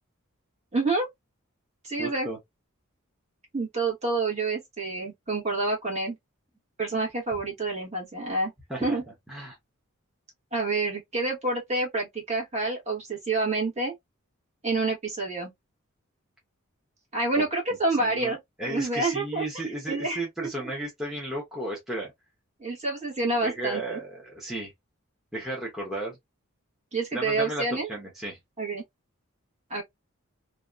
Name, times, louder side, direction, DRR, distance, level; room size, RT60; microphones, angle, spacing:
voice 1, 0.7-1.1 1.8-2.3 3.5-6.2 6.8-8.5 8.8-9.0 10.5-13.9 14.6-15.5 17.1-18.4 18.7-19.4 19.9-20.5 22.6-24.0 26.9-27.9 28.6-28.8 29.7-29.8, right 3 dB, 30° right, 1.3 m, -28 dB
voice 2, 2.0-2.4 8.7-9.0 9.3-9.5 17.3-17.4 18.0-22.1 23.4-24.7 25.3-26.2 27.1-28.4, right 2 dB, ahead, 0.8 m, -34 dB
2.7 x 2.3 x 2.4 m
head